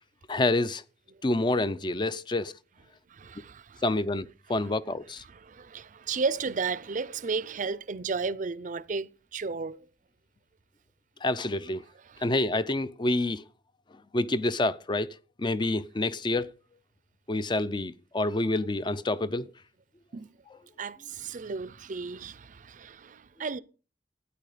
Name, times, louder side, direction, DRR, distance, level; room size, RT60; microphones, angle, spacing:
voice 1, 0.3-0.8 1.2-2.5 3.8-5.2 11.2-11.9 12.2-13.4 14.1-16.5 17.3-19.5, left 2 dB, 25° left, 0.5 m, -28 dB
voice 2, 3.1-3.8 4.5-4.7 5.2-9.9 12.1-12.3 20.1-20.3 20.8-23.6, right 4 dB, 50° right, 0.5 m, -34 dB
13.0 x 9.2 x 5.0 m
head